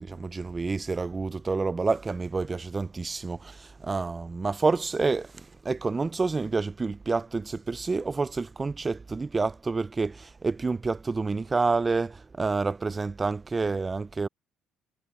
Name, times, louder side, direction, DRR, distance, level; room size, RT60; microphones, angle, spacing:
voice 1, 0.0-14.3, right 4 dB, 25° right, 0.3 m, -28 dB
cardioid pair, 90°, 0 cm